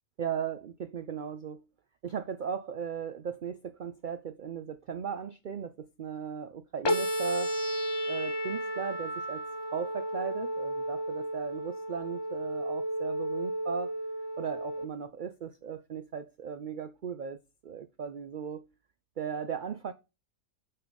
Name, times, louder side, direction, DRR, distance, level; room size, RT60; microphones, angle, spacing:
voice 1, 0.2-1.6 2.0-7.5 8.1-9.4 9.7-13.9 14.4-18.6 19.2-19.9, right 7 dB, 80° right, 0.4 m, -37 dB
sound 1, 6.8-14.9, equal, 30° left, 0.4 m, -33 dB
7.8 x 3.8 x 5.1 m
omnidirectional pair, 1.5 m